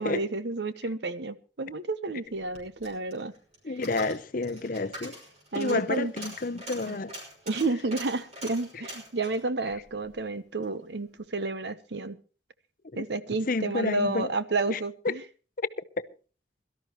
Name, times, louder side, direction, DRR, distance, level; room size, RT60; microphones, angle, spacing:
voice 1, 0.0-3.3 5.5-6.1 6.9-7.0 7.5-12.2 13.0-15.2, right 3 dB, 65° right, 1.0 m, -31 dB
Coin (dropping), 2.3-10.7 11.1-11.2, equal, 35° right, 5.9 m, -44 dB
voice 2, 3.6-5.2 5.5-7.1 12.9-13.1 13.5-14.3 14.7-14.8 15.0-15.2 15.6-15.7 16.0-16.1, left 3 dB, 50° left, 0.7 m, -30 dB
22.5 x 13.0 x 3.0 m
head